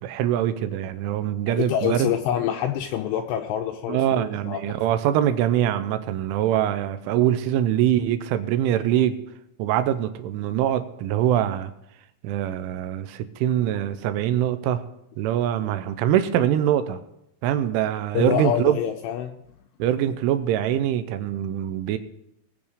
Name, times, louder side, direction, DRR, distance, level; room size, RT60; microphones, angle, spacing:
voice 1, 0.0-2.1 3.9-9.2 9.6-11.7 12.2-14.8 15.2-17.0 17.4-18.8 19.8-22.0, right 11 dB, 85° right, 11 dB, 3.2 m, -23 dB
voice 2, 1.5-4.8 18.1-19.4, left 10 dB, 85° left, 5 dB, 2.5 m, -26 dB
20.0 x 7.0 x 5.0 m, 0.82 s
omnidirectional pair, 5.5 m